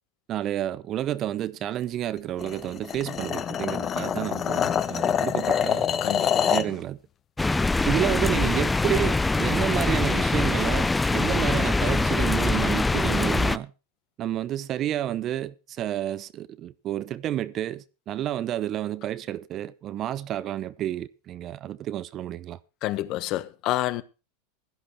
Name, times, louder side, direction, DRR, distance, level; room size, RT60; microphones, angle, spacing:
voice 1, 0.3-5.9 6.5-7.0 7.9-13.7 14.2-22.6, right 12 dB, 40° right, 0.7 m, -30 dB
sound 1, 2.4-6.7, left 8 dB, 30° left, 1.2 m, -26 dB
voice 2, 6.0-6.5 22.8-24.0, left 15 dB, 50° left, 1.2 m, -28 dB
sound 2, 7.4-13.6, left 3 dB, 10° left, 0.5 m, -23 dB
16.5 x 11.5 x 3.1 m
hypercardioid pair, 115°, 0 cm